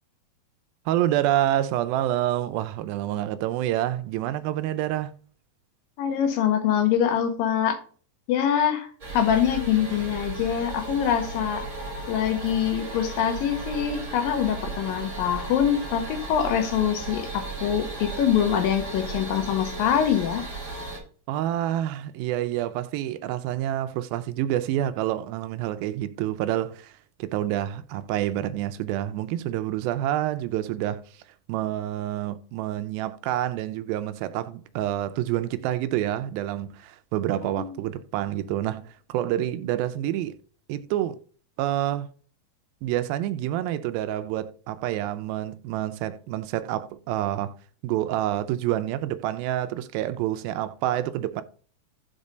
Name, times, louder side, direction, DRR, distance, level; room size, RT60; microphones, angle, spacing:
voice 1, 0.9-5.1 21.3-26.9 27.2-31.0 31.5-40.4 40.7-41.2 41.6-42.1 42.8-47.5 47.8-51.4, right 13 dB, 85° right, 2.3 m, -28 dB
voice 2, 6.0-7.8 8.3-8.9 9.1-11.7 12.1-20.4 37.4-37.8, left 9 dB, 75° left, 2.5 m, -24 dB
sound 1, 9.0-21.0, right 3 dB, 30° right, 1.5 m, -35 dB
5.4 x 5.1 x 5.0 m
omnidirectional pair, 4.2 m